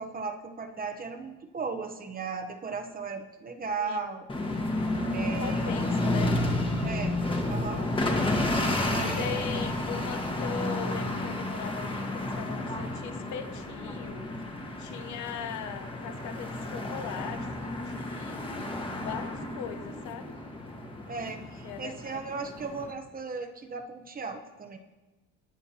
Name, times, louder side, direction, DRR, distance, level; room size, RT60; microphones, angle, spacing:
voice 1, 0.0-4.2 5.1-5.7 6.8-7.2 7.4-7.9 8.9-9.4 21.1-24.8, right 4 dB, 25° right, 6 dB, 0.9 m, -36 dB
voice 2, 3.8-4.2 5.4-6.3 9.0-14.3 14.8-18.6 19.0-20.3 21.6-22.2, left 8 dB, 60° left, 9 dB, 0.9 m, -39 dB
sound 1, 4.3-22.9, left 1 dB, 15° left, 1.5 m, -31 dB
19.5 x 9.0 x 2.9 m, 1.1 s
cardioid pair, 120°, 33 cm